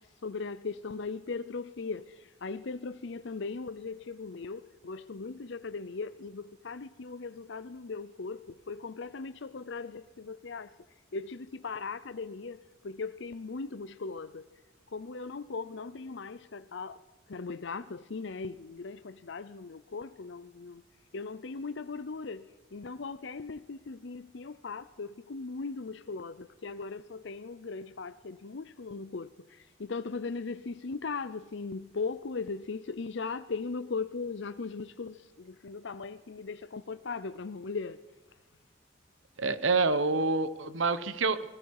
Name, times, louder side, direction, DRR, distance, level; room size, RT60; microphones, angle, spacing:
voice 1, 0.0-10.7 11.1-14.5 14.9-17.0 17.3-20.8 21.1-38.0, left 4 dB, 60° left, 0.6 m, -38 dB
voice 2, 39.4-41.5, right 3 dB, 70° right, 1.1 m, -27 dB
27.0 x 20.0 x 4.8 m
head